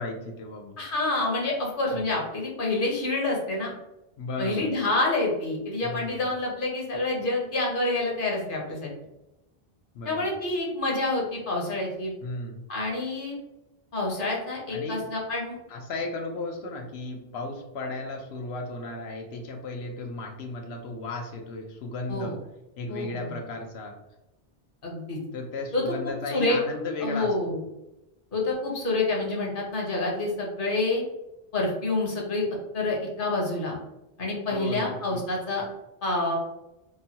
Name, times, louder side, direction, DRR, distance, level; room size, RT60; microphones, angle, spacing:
voice 1, 0.0-0.8 1.9-2.2 4.2-4.9 5.8-6.3 9.9-10.4 12.2-12.6 14.7-15.1 15.7-22.3 22.8-23.9 25.3-27.3 34.5-35.2, left 2 dB, 90° left, 2 dB, 0.9 m, -35 dB
voice 2, 0.8-3.7 4.4-8.9 10.0-12.1 12.7-13.4 13.9-15.6 22.1-22.3 22.9-23.3 24.8-25.2 25.7-25.8 26.3-26.6 27.0-27.6 28.3-31.0 31.5-32.4 32.7-33.8 34.2-35.7 36.0-36.4, left 2 dB, 60° left, -2 dB, 1.0 m, -27 dB
3.0 x 2.2 x 2.7 m, 0.93 s
omnidirectional pair, 1.0 m